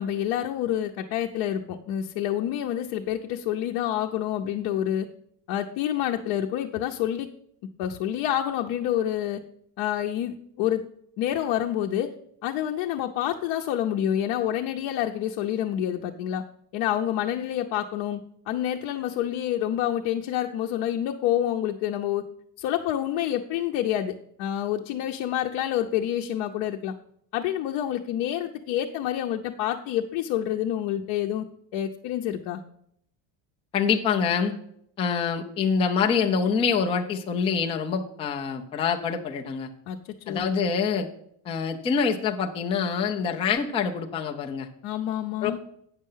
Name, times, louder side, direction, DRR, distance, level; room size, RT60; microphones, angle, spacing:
voice 1, 0.0-5.1 5.5-7.3 7.8-9.4 9.8-10.8 11.2-12.1 12.4-16.4 16.7-18.2 18.5-22.2 22.6-26.9 27.3-31.5 31.7-32.6 39.9-40.0 40.3-40.5 44.8-45.6, left 11 dB, 60° left, 2 dB, 0.7 m, -28 dB
voice 2, 33.7-34.5 35.0-39.7 40.3-41.1 41.4-44.7 45.4-45.5, left 6 dB, 15° left, 2 dB, 0.3 m, -25 dB
8.8 x 6.4 x 5.5 m, 0.71 s
cardioid pair, 165°, 49 cm